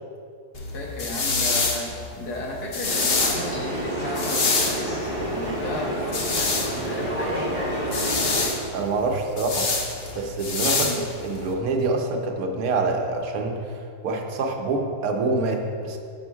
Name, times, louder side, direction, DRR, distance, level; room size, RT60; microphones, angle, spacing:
sound 1, 0.5-11.5, left 3 dB, 50° left, 0.8 m, -27 dB
voice 1, 0.7-8.2 10.8-11.1, left 1 dB, 80° left, -2 dB, 1.8 m, -34 dB
sound 2, 2.9-8.5, right 1 dB, 35° left, 1.8 m, -29 dB
voice 2, 8.7-9.7 10.1-16.0, right 3 dB, 70° right, 3 dB, 1.1 m, -26 dB
7.0 x 5.2 x 4.6 m, 2.3 s
omnidirectional pair, 1.7 m